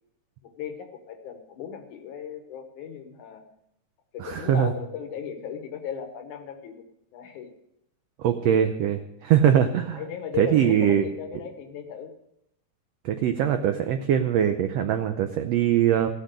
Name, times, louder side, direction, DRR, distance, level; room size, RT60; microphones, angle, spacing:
voice 1, 0.4-3.4 4.1-6.8 7.1-7.5 9.9-12.1, left 7 dB, 70° left, 7 dB, 2.5 m, -36 dB
voice 2, 4.2-4.7 8.2-10.0 10.4-11.1 13.0-16.1, right 9 dB, 85° right, 7 dB, 1.4 m, -22 dB
15.0 x 7.7 x 6.6 m, 0.81 s
omnidirectional pair, 3.8 m